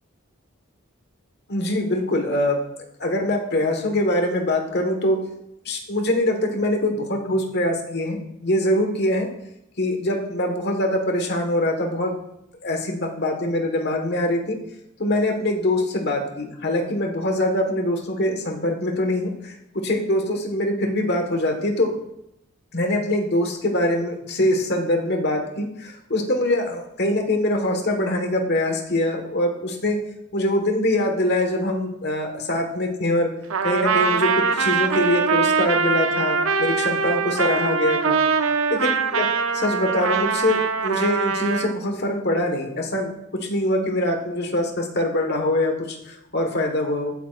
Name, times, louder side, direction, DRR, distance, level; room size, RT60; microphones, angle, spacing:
voice 1, 1.5-2.6 3.0-5.2 5.6-9.3 9.8-12.1 12.6-14.6 15.0-19.5 19.8-21.9 22.7-30.0 30.3-33.3 33.6-38.2 38.7-39.3 39.5-43.1 43.4-47.1, left 1 dB, 55° left, 3 dB, 1.5 m, -23 dB
Trumpet, 33.5-41.7, right 5 dB, 85° right, 0.7 m, -22 dB
14.5 x 8.6 x 2.5 m, 0.82 s
head